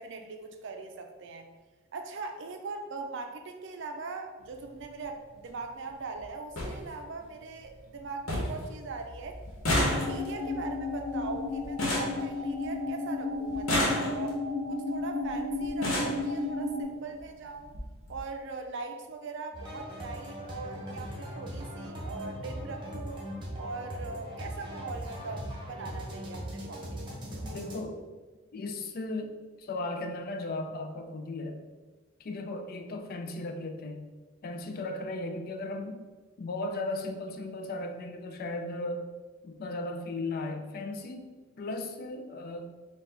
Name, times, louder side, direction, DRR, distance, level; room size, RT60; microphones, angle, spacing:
voice 1, 0.0-1.5 1.9-9.4 9.8-14.4 14.7-17.8 18.1-23.2 23.6-27.4, right 3 dB, 60° right, 5 dB, 0.5 m, -41 dB
sound 1, 4.4-4.6 5.9-6.0 6.2-6.3 6.6-6.7 7.2-7.7 7.9-8.0 8.3-8.7 8.9-12.9 13.5-14.5 15.3-15.4 15.6-16.2 17.2-17.3 17.6-17.8 18.1-18.2, left 1 dB, 80° left, 1.1 m, -31 dB
sound 2, 9.8-16.8, left 3 dB, 30° left, 0.9 m, -33 dB
sound 3, 19.5-27.8, equal, 25° right, 0.9 m, -39 dB
voice 2, 27.4-28.1 28.5-31.6 32.2-34.0 34.4-36.0 36.4-39.1 39.4-42.7, left 2 dB, 45° left, 6 dB, 0.4 m, -36 dB
4.6 x 2.4 x 3.8 m, 1.3 s
head